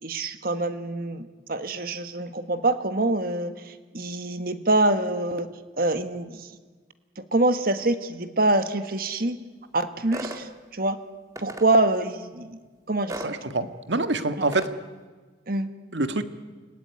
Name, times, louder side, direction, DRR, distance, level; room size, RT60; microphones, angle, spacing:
voice 1, 0.0-5.5 5.8-6.5 7.2-9.4 9.7-11.0 11.4-12.6 12.9-13.3 14.4-14.5 15.5-15.7, right 2 dB, 55° right, 9 dB, 1.6 m, -25 dB
sound 1, 10.1-10.4 11.3-11.7 13.1-13.3 14.5-14.7, right 1 dB, 20° right, 1.9 m, -35 dB
voice 2, 13.2-14.7 15.9-16.2, right 2 dB, 90° right, 9 dB, 1.8 m, -26 dB
29.0 x 19.0 x 9.6 m, 1.4 s
head